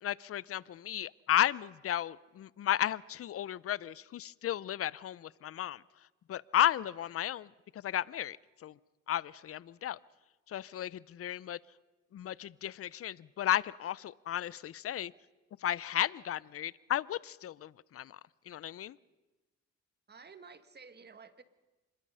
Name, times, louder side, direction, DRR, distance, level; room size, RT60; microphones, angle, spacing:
voice 1, 0.0-8.8 9.1-10.0 10.5-11.6 12.1-15.1 15.6-18.2 18.5-19.0, left 11 dB, 50° left, 21 dB, 0.6 m, -34 dB
voice 2, 20.1-21.4, right 5 dB, 35° right, 11 dB, 1.6 m, -52 dB
26.0 x 21.0 x 5.6 m, 1.1 s
cardioid pair, 90°, 30 cm